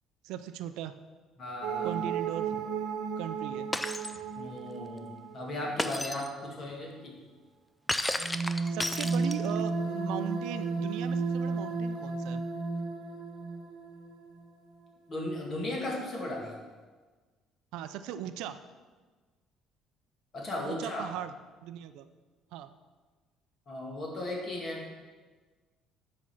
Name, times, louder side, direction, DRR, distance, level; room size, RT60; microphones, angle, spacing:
voice 1, 0.2-0.9 1.8-2.7 3.2-3.8 8.6-12.4 17.7-18.6 20.6-21.3 21.6-22.1 22.5-22.7, right 10 dB, 85° right, 11 dB, 0.5 m, -38 dB
voice 2, 1.4-1.9 4.4-5.1 5.3-7.1 15.1-16.5 20.3-21.1 23.7-24.9, left 1 dB, 30° left, -1 dB, 2.0 m, -36 dB
sound 1, 1.6-6.0 8.1-14.5 14.9-15.0, right 4 dB, 70° right, 1.1 m, -34 dB
Shatter, 3.7-4.2 5.8-6.3 7.9-9.6, left 1 dB, 5° left, 0.3 m, -32 dB
8.5 x 5.3 x 6.0 m, 1.4 s
cardioid pair, 160°, 0 cm